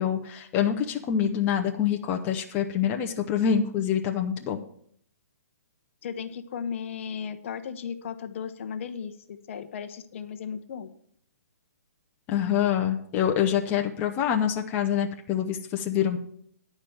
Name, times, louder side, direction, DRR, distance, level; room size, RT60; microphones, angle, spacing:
voice 1, 0.0-4.6 12.3-16.2, left 9 dB, 20° left, 3 dB, 0.7 m, -26 dB
voice 2, 6.0-10.9, left 7 dB, 50° left, 10 dB, 0.9 m, -36 dB
10.0 x 5.1 x 7.7 m, 0.64 s
hypercardioid pair, 150°, 9 cm